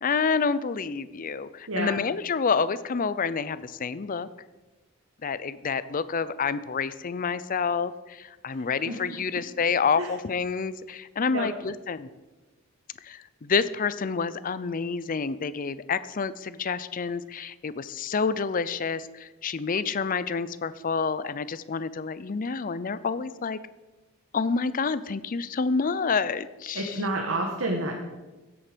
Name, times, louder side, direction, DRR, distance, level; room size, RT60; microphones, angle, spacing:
voice 1, 0.0-4.3 5.2-12.1 13.0-23.6 24.3-27.0, left 5 dB, 40° left, 16 dB, 0.5 m, -28 dB
voice 2, 1.7-2.0 8.9-9.2 10.0-10.1 11.3-11.5 26.7-28.0, right 1 dB, 75° right, 2 dB, 1.4 m, -29 dB
15.5 x 8.7 x 5.1 m, 1.2 s
head